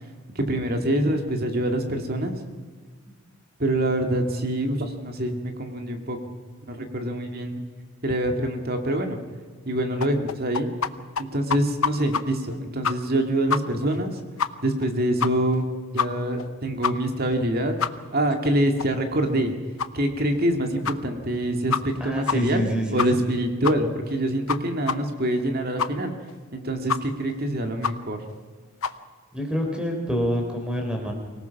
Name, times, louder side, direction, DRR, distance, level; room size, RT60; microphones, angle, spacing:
voice 1, 0.4-2.4 3.6-6.2 6.7-7.6 8.0-9.2 9.7-10.7 11.2-14.2 14.6-15.7 15.9-17.7 18.1-19.6 19.9-26.1 26.5-28.2, right 1 dB, 45° right, 5 dB, 2.2 m, -25 dB
sound 1, 10.0-10.9 11.2-11.3 11.5-12.2 12.5-12.6 12.8-13.2 13.5-13.6 13.9-14.0 14.4-14.5 14.8-14.9 15.2-15.6 16.0-16.1 16.4-16.5 16.8-16.9 17.3-17.4 17.8-17.9 18.3-18.4 18.8-18.9 19.3-19.4 19.8-19.9 20.3-20.4 20.8-21.0 21.3-21.4 21.7-22.0 22.3-22.4 22.6-22.7 23.0-23.3 23.6-23.8 24.1-24.2 24.5-24.6 24.9-25.0 25.3-25.4 25.8-25.9 26.3-26.4 26.9-27.0 27.3-27.4 27.8-27.9 28.3-28.4 28.8-28.9, left 6 dB, 70° left, 0.8 m, -25 dB
voice 2, 22.0-23.2 29.3-31.1, equal, 5° right, 2 dB, 3.6 m, -27 dB
24.5 x 18.0 x 5.9 m, 1.5 s
head